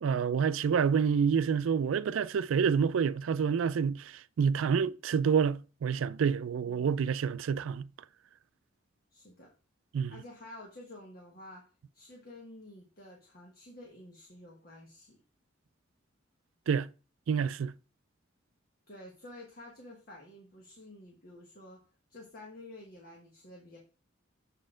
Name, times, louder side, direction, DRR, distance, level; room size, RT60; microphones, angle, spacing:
voice 1, 0.0-7.9 9.9-10.2 16.7-16.9 17.3-17.7, right 6 dB, 80° right, 0.4 m, -28 dB
voice 2, 6.6-6.9 9.1-9.5 10.1-11.6 11.9-15.2 18.9-21.8 22.1-23.8, left 1 dB, 50° left, 1.4 m, -50 dB
7.4 x 4.1 x 3.8 m
head